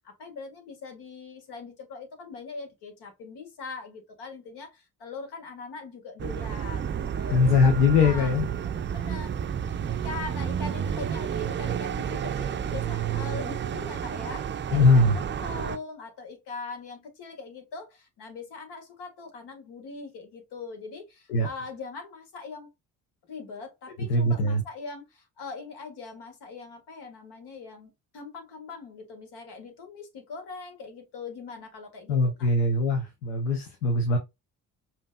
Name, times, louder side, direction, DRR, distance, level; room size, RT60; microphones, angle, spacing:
voice 1, 0.0-7.7 8.0-8.3 8.9-9.3 9.6-22.7 23.3-32.5, left 4 dB, 60° left, 1.5 m, -41 dB
sound 1, 6.2-15.8, right 8 dB, 25° right, 0.5 m, -31 dB
voice 2, 7.3-8.5 14.7-15.2 21.3-21.5 24.1-24.6 32.1-34.2, left 3 dB, 75° left, 0.8 m, -21 dB
5.1 x 2.8 x 2.2 m
hypercardioid pair, 45°, 44 cm